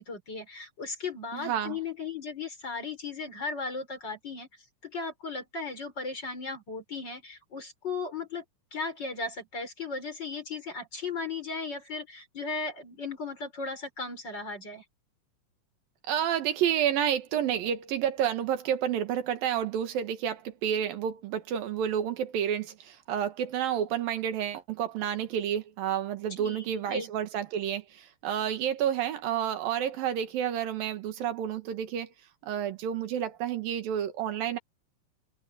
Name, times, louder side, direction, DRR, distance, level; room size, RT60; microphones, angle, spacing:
voice 1, 0.0-4.5 4.8-8.4 8.7-14.8 26.4-27.1, left 4 dB, 30° left, 5.2 m, -36 dB
voice 2, 1.3-1.8 16.1-32.1 32.4-34.6, right 9 dB, 80° right, 3.3 m, -30 dB
open air
omnidirectional pair, 4.0 m